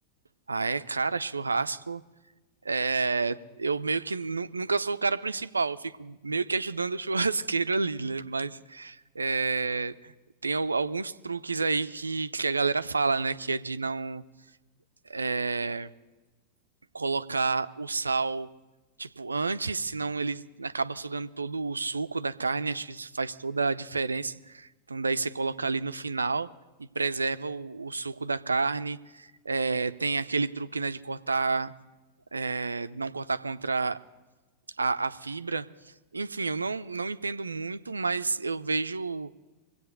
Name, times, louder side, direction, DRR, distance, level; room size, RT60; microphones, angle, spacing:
voice 1, 0.5-2.0 2.6-10.1 10.4-14.2 15.1-15.9 16.9-18.5 19.0-26.5 26.8-31.7 32.3-34.0 34.8-35.7 36.1-39.3, right 4 dB, 80° right, 13 dB, 0.5 m, -30 dB
23.0 x 8.3 x 6.7 m, 1.2 s
figure-of-eight pair, 90°, 0 cm